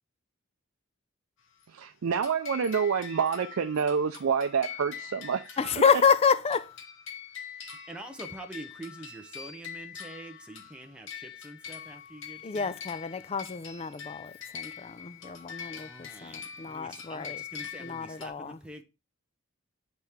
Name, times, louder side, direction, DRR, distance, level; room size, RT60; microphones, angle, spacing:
voice 1, 1.7-5.8, right 6 dB, 85° right, 0.4 m, -28 dB
sound 1, 2.2-18.3, left 8 dB, 65° left, 1.0 m, -44 dB
voice 2, 5.6-6.6 12.4-17.4 17.8-18.6, left 6 dB, 30° left, 0.4 m, -28 dB
voice 3, 7.9-12.8 13.1-13.4 15.7-18.8, right 1 dB, 5° right, 0.7 m, -46 dB
8.2 x 4.4 x 3.5 m
head